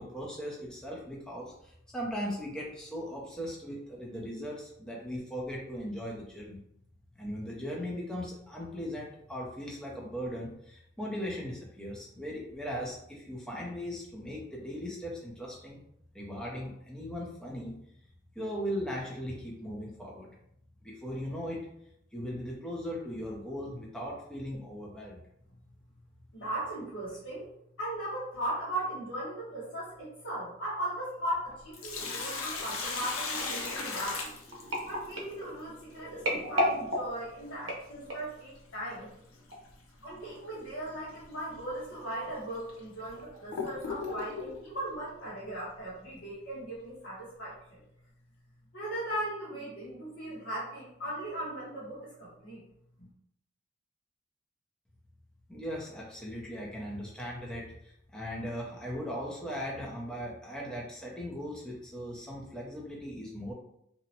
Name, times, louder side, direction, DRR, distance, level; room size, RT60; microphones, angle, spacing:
voice 1, 0.0-6.6 7.2-15.8 16.1-17.7 18.3-20.3 20.8-21.7 22.1-25.2 55.5-63.5, equal, 5° left, -4 dB, 0.5 m, -38 dB
voice 2, 26.3-27.5 27.8-34.3 34.9-39.1 40.0-47.8 48.7-52.6 53.0-53.1, right 1 dB, 70° left, -10 dB, 0.9 m, -38 dB
Sink (filling or washing), 31.5-35.1 37.5-37.6 39.5-39.7 40.2-40.3 41.1-41.2 41.9-42.0 42.7-44.6, left 4 dB, 85° left, 0.5 m, -36 dB
sound 1, 33.4-38.4 39.0-39.2 39.5-39.6, equal, 65° right, 0.7 m, -34 dB
2.6 x 2.0 x 2.7 m, 0.75 s
head